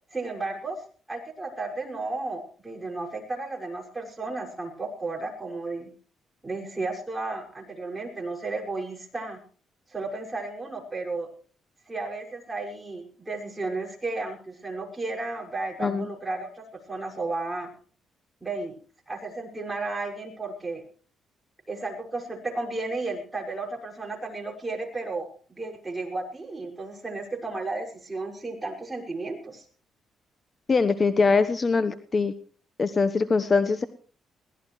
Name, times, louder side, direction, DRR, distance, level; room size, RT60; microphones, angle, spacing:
voice 1, 0.1-0.8 1.1-5.9 6.4-9.4 9.9-11.3 11.9-17.7 18.4-18.7 19.1-20.8 21.7-29.6, right 3 dB, 15° right, 0 dB, 6.1 m, -33 dB
voice 2, 30.7-32.3 32.8-33.9, left 4 dB, 35° left, 11 dB, 1.1 m, -22 dB
22.0 x 17.5 x 3.2 m, 0.43 s
cardioid pair, 90°, 0 cm